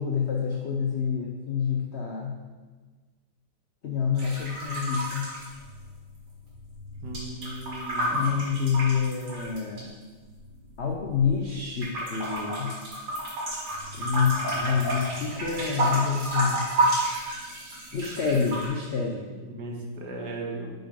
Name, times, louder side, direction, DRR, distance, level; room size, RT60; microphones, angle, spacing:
voice 1, 0.0-2.4 3.8-5.3 8.1-9.9 10.8-12.7 13.9-16.7 17.9-19.3, left 6 dB, 70° left, 0 dB, 0.6 m, -27 dB
sound 1, 4.1-6.2 6.5-9.8 10.4-11.4 11.8-18.7, right 1 dB, 80° right, 2.7 m, -30 dB
voice 2, 7.0-8.3 19.5-20.7, right 2 dB, 65° right, 0 dB, 1.6 m, -36 dB
5.9 x 5.1 x 5.1 m, 1.4 s
omnidirectional pair, 2.0 m